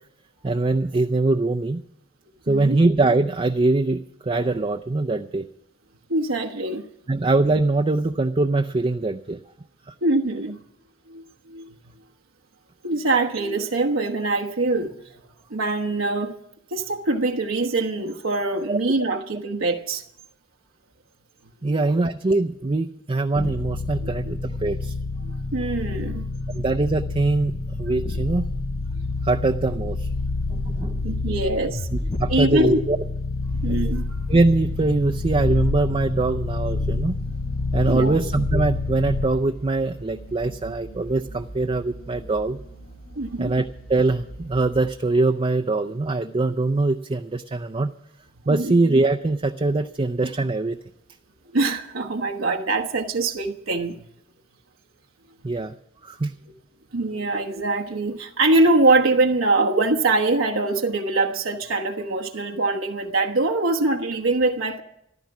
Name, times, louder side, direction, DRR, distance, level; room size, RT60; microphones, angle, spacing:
voice 1, 0.4-1.8 2.5-5.4 7.1-9.4 9.9-10.0 18.7-18.8 21.6-24.9 26.5-28.5 29.2-30.1 30.5-31.0 32.2-33.0 34.3-37.2 37.7-42.6 43.4-47.9 48.5-50.8 55.4-55.7 56.0-56.3, right 2 dB, 30° right, 0.5 m, -22 dB
voice 2, 2.5-2.8 6.1-6.9 10.0-10.6 11.1-11.7 12.8-15.2 15.5-16.4 16.7-20.0 21.6-21.8 24.0-24.1 25.2-26.3 31.0-31.9 32.3-32.8 33.6-34.2 37.9-38.2 43.2-43.5 48.5-48.7 51.5-54.0 56.9-64.8, right 2 dB, 85° right, 1.1 m, -23 dB
sound 1, 23.4-39.5, left 3 dB, 35° left, 0.6 m, -28 dB
sound 2, 33.4-44.9, right 1 dB, 65° left, 3.4 m, -42 dB
14.5 x 12.5 x 6.0 m
head